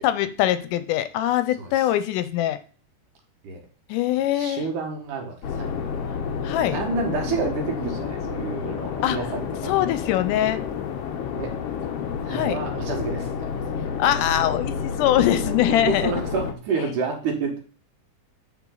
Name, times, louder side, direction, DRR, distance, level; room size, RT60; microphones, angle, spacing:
voice 1, 0.0-2.6 3.9-4.6 6.4-6.8 9.0-9.2 9.7-10.6 12.3-12.6 14.0-16.1, left 12 dB, 85° left, 12 dB, 2.2 m, -22 dB
voice 2, 4.3-5.7 6.7-9.8 11.3-11.6 12.2-14.0 15.3-17.6, right 4 dB, 75° right, 1 dB, 3.0 m, -29 dB
sound 1, 5.4-16.5, left 6 dB, 70° left, 1.4 m, -30 dB
8.2 x 5.3 x 3.8 m, 0.40 s
omnidirectional pair, 3.7 m